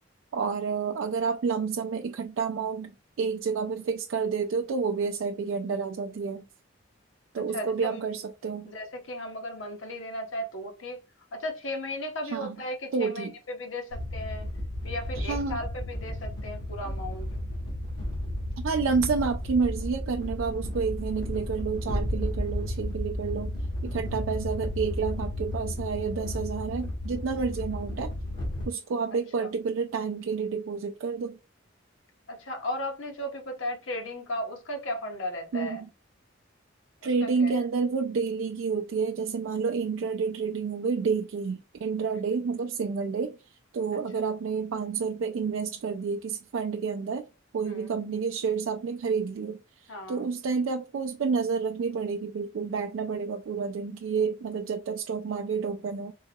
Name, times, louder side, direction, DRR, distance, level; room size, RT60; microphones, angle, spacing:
voice 1, 0.3-2.9 3.2-6.4 7.3-8.7 12.2-12.6 12.9-13.3 15.2-15.6 18.6-23.5 23.8-28.1 28.7-31.4 35.5-35.9 37.0-47.3 47.5-56.1, right 5 dB, 75° right, 0.3 m, -29 dB
voice 2, 7.3-8.0 8.6-11.0 11.3-14.5 14.8-17.3 29.4-29.5 32.3-35.8 37.2-37.6 44.1-44.2 47.6-47.9 49.9-50.3, left 1 dB, 80° left, 0.9 m, -35 dB
sound 1, 13.9-28.7, left 1 dB, 60° left, 1.2 m, -33 dB
3.7 x 2.8 x 2.2 m
head